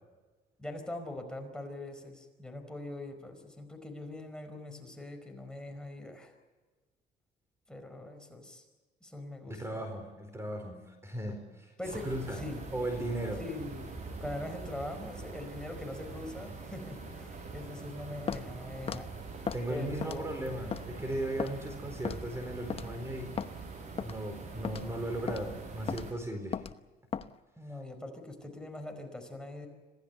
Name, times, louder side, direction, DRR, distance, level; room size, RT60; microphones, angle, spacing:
voice 1, 0.6-6.3 7.7-8.6 9.0-9.8 11.8-12.6 13.4-13.9 14.2-19.1 19.7-20.4 27.6-29.7, left 2 dB, 5° left, 4 dB, 4.8 m, -42 dB
voice 2, 9.5-11.7 12.0-12.4 12.7-13.4 19.5-23.4 24.0-26.6, right 1 dB, 15° right, 6 dB, 4.3 m, -37 dB
sound 1, 11.8-26.1, right 4 dB, 45° right, 6.5 m, -44 dB
Walk footsteps, 18.3-18.5 18.9-19.0 19.5-19.6 20.0-20.3 20.7-20.9 21.4-21.5 22.1-22.3 22.7-22.9 23.4-23.5 24.0-24.2 24.6-24.9 25.3-25.4 25.9-26.1 26.5-26.7 27.1-27.3, left 7 dB, 35° left, 1.0 m, -35 dB
26.5 x 17.5 x 8.1 m, 1.3 s
cardioid pair, 110°, 17 cm